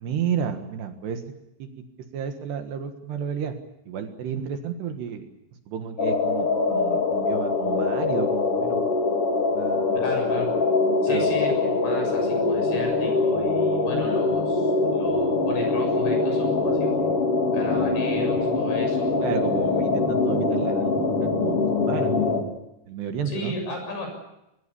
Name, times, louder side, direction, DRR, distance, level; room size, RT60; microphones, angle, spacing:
voice 1, 0.0-1.2 1.6-1.8 2.1-3.5 3.9-5.3 5.7-8.9 9.5-10.0 11.1-11.3 19.2-22.5 22.9-23.6, right 7 dB, 65° right, 6 dB, 3.4 m, -31 dB
sound 1, 6.0-22.4, left 3 dB, 35° left, 2.8 m, -23 dB
voice 2, 9.9-10.5 11.0-17.3 17.5-19.2 23.3-24.1, left 2 dB, 65° left, 4 dB, 9.3 m, -35 dB
23.0 x 21.5 x 8.5 m, 0.86 s
omnidirectional pair, 5.6 m